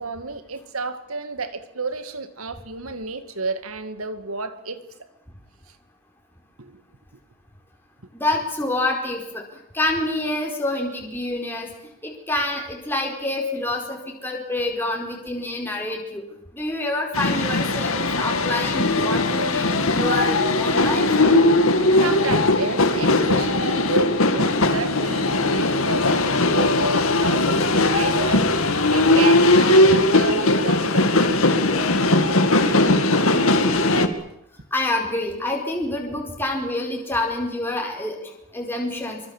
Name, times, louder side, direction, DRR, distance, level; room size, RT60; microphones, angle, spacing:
voice 1, 0.0-4.8 6.6-6.8 22.0-31.3, right 3 dB, 85° right, 2.2 m, -31 dB
voice 2, 8.1-9.4 9.7-11.7 12.0-16.2 16.5-21.0 34.7-38.1 38.5-39.2, left 2 dB, 10° left, 4.7 m, -27 dB
sound 1, 17.1-34.1, left 2 dB, 80° left, 2.2 m, -19 dB
25.0 x 24.0 x 7.4 m
head